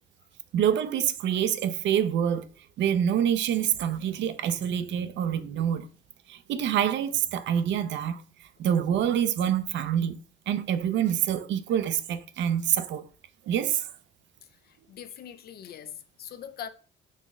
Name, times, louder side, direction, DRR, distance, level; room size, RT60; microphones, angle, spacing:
voice 1, 0.5-2.5 2.8-5.9 6.3-8.2 8.6-10.2 10.5-13.1 13.5-13.9, right 9 dB, 65° right, 0.4 m, -26 dB
voice 2, 14.5-16.7, left 9 dB, 50° left, 0.4 m, -42 dB
4.0 x 2.0 x 3.5 m
cardioid pair, 90°, 20 cm